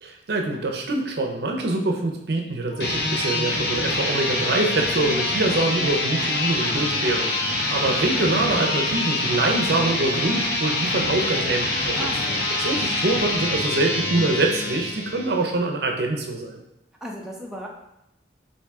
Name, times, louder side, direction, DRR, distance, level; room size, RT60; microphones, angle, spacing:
voice 1, 0.0-12.0 12.6-16.6, right 2 dB, 65° right, 2 dB, 0.6 m, -25 dB
sound 1, 2.7-15.5, left 2 dB, 65° left, 0.8 m, -25 dB
voice 2, 11.9-12.5 17.0-17.7, right 1 dB, 5° right, -2 dB, 0.4 m, -36 dB
4.6 x 2.7 x 3.4 m, 0.86 s
head